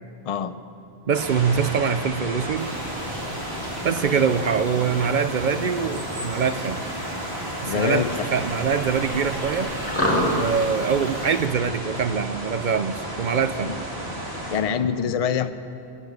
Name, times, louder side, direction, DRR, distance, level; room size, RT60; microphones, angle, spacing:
voice 1, 1.1-2.7 3.8-6.8 7.6-9.7 10.3-13.7, right 6 dB, 55° right, 11 dB, 0.6 m, -24 dB
sound 1, 1.1-14.6, equal, 75° right, 2.5 m, -32 dB
sound 2, 2.6-11.4, equal, 15° left, 1.9 m, -32 dB
voice 2, 7.7-8.3 13.7-13.8 14.5-15.5, left 7 dB, 45° left, 11 dB, 0.5 m, -25 dB
13.5 x 9.9 x 9.4 m, 2.8 s
omnidirectional pair, 1.0 m